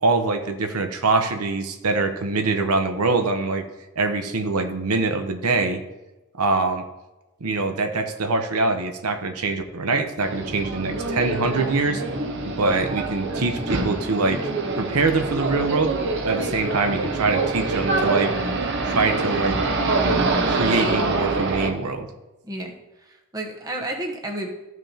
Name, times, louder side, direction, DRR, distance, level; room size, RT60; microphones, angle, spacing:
voice 1, 0.0-3.6 4.0-5.8 6.4-6.8 7.4-12.0 12.4-14.4 14.8-15.9 16.2-18.3 18.8-19.6 20.4-22.1, right 3 dB, 85° right, 6 dB, 0.9 m, -23 dB
sound 1, 10.2-21.7, right 3 dB, 50° right, 1.0 m, -25 dB
voice 2, 20.8-21.1 22.4-22.7 23.0-24.5, right 1 dB, 15° right, 2 dB, 1.0 m, -31 dB
14.5 x 6.2 x 2.9 m, 1.0 s
head